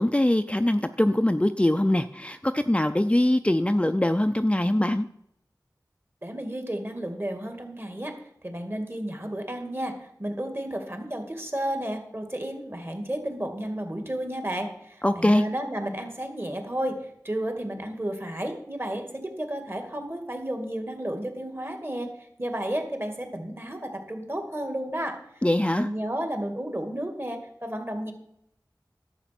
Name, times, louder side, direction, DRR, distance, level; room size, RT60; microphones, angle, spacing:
voice 1, 0.0-5.1 15.0-15.4 25.4-25.9, left 1 dB, 15° left, 9 dB, 0.5 m, -22 dB
voice 2, 6.2-8.2 8.4-22.1 22.4-28.1, right 1 dB, 30° right, 5 dB, 2.4 m, -32 dB
11.5 x 7.9 x 6.0 m, 0.76 s
wide cardioid pair, 45°, 7 cm